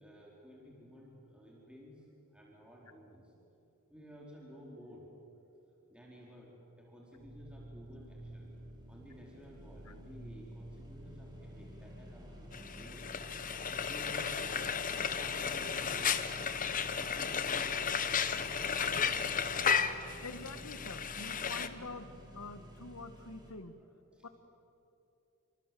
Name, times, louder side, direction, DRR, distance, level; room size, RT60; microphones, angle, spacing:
voice 1, 0.0-2.0 2.3-3.3 3.9-5.1 5.9-6.5 6.8-8.5 8.9-13.3 13.8-14.8 15.1-16.5 16.9-17.9 23.8-24.3, equal, 5° right, -3 dB, 4.2 m, -54 dB
sound 1, 7.2-23.5, equal, 20° right, 4.6 m, -50 dB
Frying (food), 12.5-21.7, left 7 dB, 40° left, 1.1 m, -34 dB
voice 2, 20.2-22.1 22.3-23.8 24.2-24.3, left 3 dB, 85° left, 10 dB, 1.6 m, -46 dB
28.5 x 26.0 x 7.7 m, 2.8 s
head